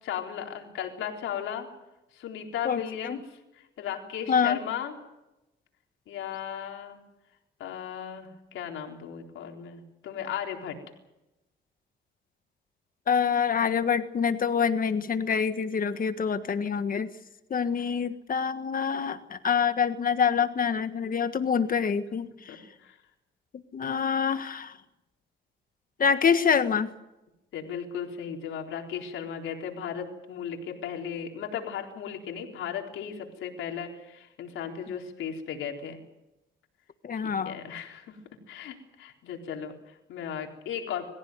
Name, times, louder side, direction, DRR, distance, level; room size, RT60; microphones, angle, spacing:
voice 1, 0.0-1.7 2.1-3.2 3.6-4.9 6.1-7.0 7.6-10.8 22.5-23.0 27.5-36.0 37.1-38.2 38.5-41.1, left 8 dB, 85° left, 2 dB, 4.1 m, -36 dB
voice 2, 2.6-3.2 4.3-4.6 13.1-17.1 17.5-22.6 23.7-24.7 26.0-26.9 37.0-37.5, left 6 dB, 45° left, 10 dB, 1.5 m, -26 dB
25.0 x 15.5 x 9.4 m, 0.96 s
cardioid pair, 90°, 20 cm